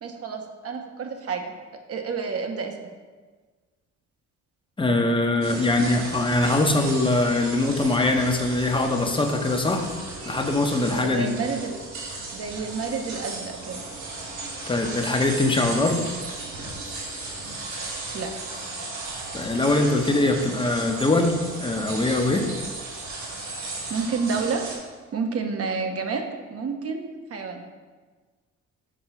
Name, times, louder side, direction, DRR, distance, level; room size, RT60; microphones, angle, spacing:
voice 1, 0.0-1.5 1.9-2.7 10.9-11.8 12.3-13.8 18.1-18.3 23.9-24.6 25.1-27.6, right 5 dB, 50° right, 4 dB, 1.0 m, -29 dB
voice 2, 4.8-9.9 10.3-11.3 14.7-16.1 19.3-22.5, left 2 dB, 15° left, 4 dB, 0.8 m, -22 dB
sound 1, 5.4-24.8, right 3 dB, 75° right, 2.0 m, -35 dB
6.2 x 3.9 x 5.7 m, 1.4 s
cardioid pair, 90°, 30 cm